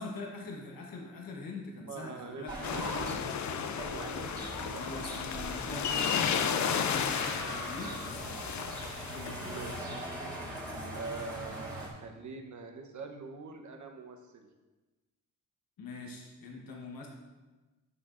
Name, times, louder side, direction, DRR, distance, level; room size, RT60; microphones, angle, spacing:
voice 1, 0.0-3.9 4.7-8.4 9.1-9.8 15.8-17.1, left 3 dB, 90° left, 0 dB, 1.1 m, -44 dB
voice 2, 1.8-2.4 3.9-5.2 9.4-10.1 10.9-14.5, right 4 dB, 60° right, 3 dB, 0.9 m, -44 dB
sound 1, 2.2-9.0 9.3-10.0, right 6 dB, 90° right, 0.7 m, -50 dB
sound 2, 2.5-3.1 3.8-11.9, right 1 dB, 10° right, 1.6 m, -41 dB
sound 3, 2.6-9.8, left 7 dB, 55° left, 0.5 m, -33 dB
9.3 x 6.0 x 2.5 m, 1.2 s
cardioid pair, 95°, 33 cm